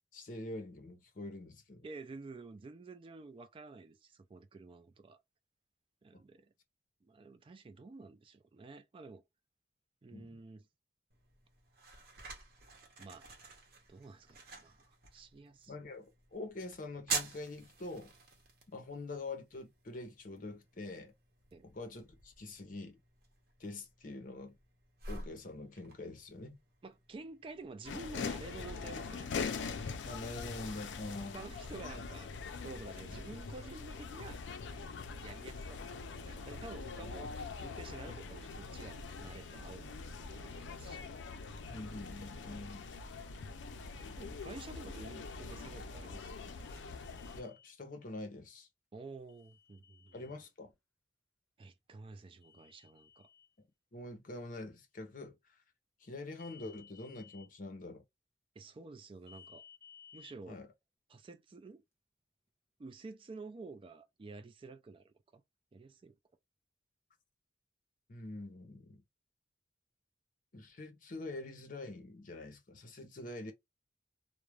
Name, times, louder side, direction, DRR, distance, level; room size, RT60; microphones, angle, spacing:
voice 1, 0.1-1.8 10.1-10.3 15.7-18.1 18.7-21.1 21.6-23.0 23.6-24.6 25.1-26.6 30.0-31.5 33.1-33.2 36.9-37.1 41.7-42.9 47.4-48.7 50.1-50.7 53.9-55.6 56.0-58.0 60.5-60.7 68.1-69.0 70.5-73.5, left 2 dB, 50° left, 0.7 m, -45 dB
voice 2, 1.8-5.2 6.0-6.5 7.0-9.2 10.0-10.7 13.0-13.3 13.9-15.7 21.5-21.7 26.8-29.3 31.3-32.3 32.6-34.4 34.7-35.0 35.2-41.1 44.0-46.7 48.9-50.1 51.6-53.3 58.6-59.6 60.1-60.6 61.1-61.8 62.8-65.4 65.7-66.1, right 3 dB, 30° right, 0.3 m, -50 dB
sound 1, 11.1-28.6, right 4 dB, 55° right, 0.8 m, -48 dB
sound 2, 27.8-47.4, left 4 dB, 80° left, 0.4 m, -43 dB
sound 3, 46.6-47.7 49.3-50.4 52.4-53.5 56.3-57.5 59.3-60.3, left 7 dB, 15° left, 0.7 m, -59 dB
2.3 x 2.1 x 3.0 m
head